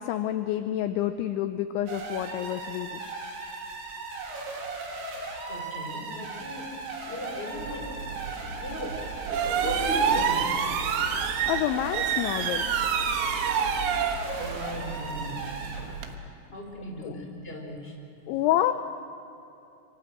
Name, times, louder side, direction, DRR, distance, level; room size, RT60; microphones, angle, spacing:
voice 1, 0.0-3.0 11.5-12.7 17.0-17.2 18.3-18.7, left 12 dB, 80° left, 9 dB, 2.9 m, -28 dB
sound 1, 1.9-15.9, right 3 dB, 55° right, 4.9 m, -37 dB
voice 2, 5.5-6.7 7.1-7.9 8.6-9.0 9.3-10.6 14.4-17.9, left 1 dB, 10° left, 0 dB, 4.2 m, -39 dB
sound 2, 7.6-16.1, right 7 dB, 75° right, 3.7 m, -29 dB
26.5 x 24.5 x 7.8 m, 2.9 s
omnidirectional pair, 5.8 m